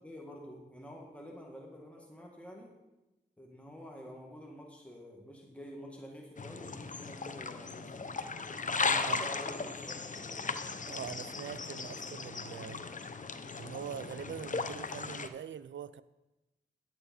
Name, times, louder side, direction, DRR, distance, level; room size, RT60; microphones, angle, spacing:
voice 1, 0.0-2.7 3.4-8.1 8.9-10.4, equal, 5° left, -1 dB, 2.0 m, -48 dB
sound 1, 6.4-15.3, left 4 dB, 40° left, 0.8 m, -37 dB
voice 2, 10.8-12.8 13.6-16.0, right 8 dB, 70° right, 15 dB, 0.5 m, -43 dB
10.0 x 9.0 x 4.4 m, 1.0 s
cardioid pair, 50°, 20 cm